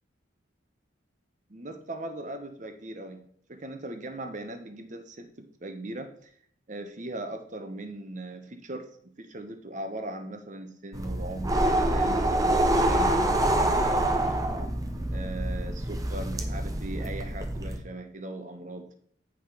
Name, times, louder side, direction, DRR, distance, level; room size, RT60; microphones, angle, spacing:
voice 1, 1.5-3.2 3.5-6.3 6.7-14.4 15.1-18.9, right 1 dB, 40° right, 6 dB, 1.0 m, -39 dB
sound 1, 10.9-17.8, right 1 dB, 20° right, 0.7 m, -26 dB
8.3 x 5.1 x 5.0 m, 0.62 s
head